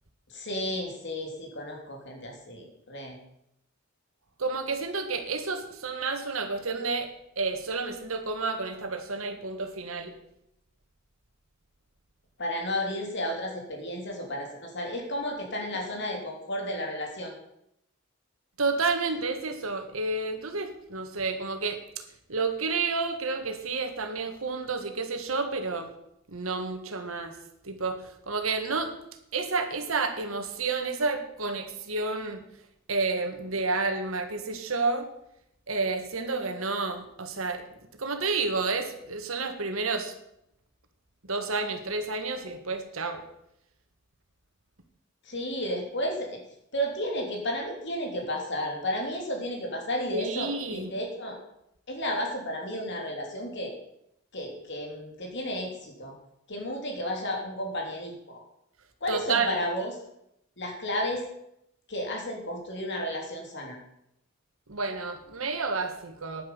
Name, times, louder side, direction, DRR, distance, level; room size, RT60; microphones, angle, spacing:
voice 1, 0.3-3.2 12.4-17.3 45.2-46.4 46.7-51.4 51.9-53.7 54.3-56.1 56.5-58.4 59.0-59.9 60.6-61.2 61.9-63.8, equal, 55° left, 1 dB, 3.2 m, -32 dB
voice 2, 4.4-10.1 18.6-21.8 22.3-25.9 26.3-27.4 27.6-28.9 29.3-32.4 32.9-35.1 35.7-37.6 37.9-40.1 41.3-43.2 50.1-50.9 59.1-59.6 64.7-66.4, right 3 dB, 80° right, 6 dB, 1.8 m, -30 dB
10.0 x 9.8 x 7.0 m, 0.78 s
head